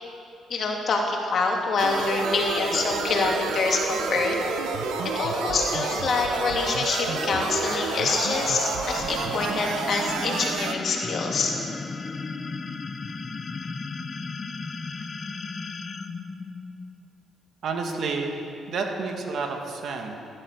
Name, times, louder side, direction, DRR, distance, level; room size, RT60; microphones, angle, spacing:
voice 1, 0.5-4.4 5.0-11.5, left 3 dB, 55° left, 0 dB, 3.1 m, -26 dB
sound 1, 1.8-10.8, right 7 dB, 90° right, 0.9 m, -31 dB
sound 2, 1.9-17.0, left 4 dB, 35° left, 1.0 m, -35 dB
voice 2, 17.6-20.2, right 4 dB, 65° right, 3 dB, 2.2 m, -30 dB
16.0 x 12.5 x 6.7 m, 2.5 s
cardioid pair, 90°, 0 cm